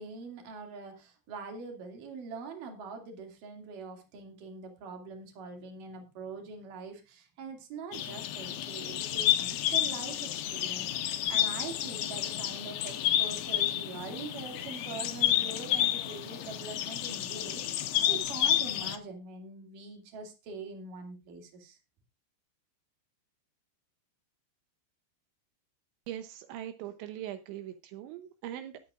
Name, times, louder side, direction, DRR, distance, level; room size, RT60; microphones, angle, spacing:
voice 1, 0.0-21.8, right 4 dB, 50° right, 3 dB, 3.6 m, -43 dB
sound 1, 7.9-19.0, left 12 dB, 75° left, 2.4 m, -30 dB
voice 2, 26.1-28.8, right 12 dB, 80° right, 8 dB, 3.2 m, -41 dB
21.0 x 8.6 x 2.5 m, 0.27 s
omnidirectional pair, 5.3 m